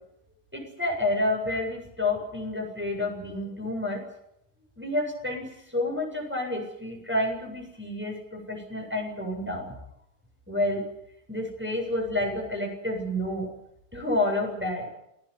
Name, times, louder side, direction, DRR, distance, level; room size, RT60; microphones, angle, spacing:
voice 1, 0.5-4.0 4.8-9.7 10.5-10.8 11.3-13.5 13.9-14.8, left 1 dB, 5° right, 1 dB, 7.7 m, -29 dB
28.0 x 17.5 x 8.5 m, 0.80 s
omnidirectional pair, 3.8 m